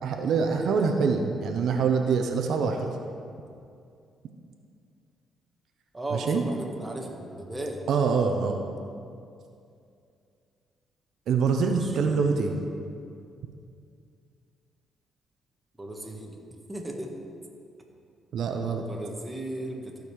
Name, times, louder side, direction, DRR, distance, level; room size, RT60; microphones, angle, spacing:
voice 1, 0.0-2.9 6.1-6.4 7.9-8.6 11.3-12.5 18.3-18.8, right 5 dB, 70° right, 4 dB, 0.8 m, -25 dB
voice 2, 0.6-1.0 5.9-7.8 11.6-12.5 15.8-16.4 16.7-17.1 18.7-20.0, right 1 dB, 10° right, 0 dB, 1.5 m, -37 dB
14.5 x 5.3 x 4.8 m, 2.5 s
cardioid pair, 90°, 0 cm